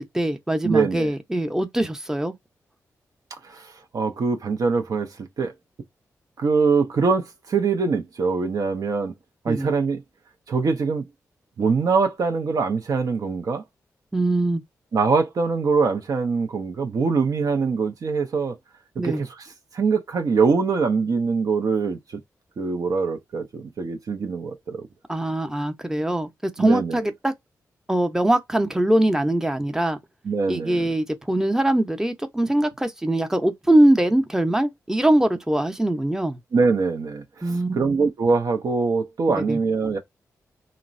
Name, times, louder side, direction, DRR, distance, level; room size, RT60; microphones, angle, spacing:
voice 1, 0.0-2.3 9.5-9.7 14.1-14.6 19.0-19.2 25.1-27.3 27.9-30.0 30.5-36.4 37.4-37.8 39.4-39.6, right 1 dB, 5° right, 0.6 m, -22 dB
voice 2, 0.6-1.1 3.4-5.5 6.4-9.1 9.4-10.0 10.5-11.1 11.6-13.6 14.9-18.6 19.0-22.0 22.6-24.9 26.6-27.0 30.2-30.9 36.5-40.0, right 4 dB, 60° right, 0.5 m, -23 dB
2.9 x 2.0 x 2.5 m
supercardioid pair, 45°, 7 cm